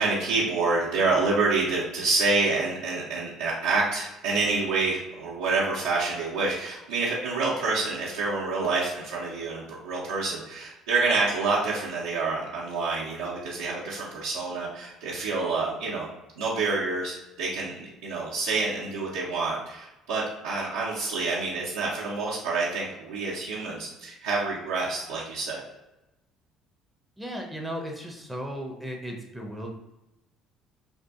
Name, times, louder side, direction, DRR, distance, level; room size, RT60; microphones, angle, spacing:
voice 1, 0.0-16.1 16.4-25.6, right 3 dB, 80° right, -7 dB, 0.4 m, -27 dB
voice 2, 27.2-29.7, equal, 5° right, 0 dB, 0.5 m, -35 dB
2.5 x 2.5 x 2.3 m, 0.95 s
hypercardioid pair, 55°, 0 cm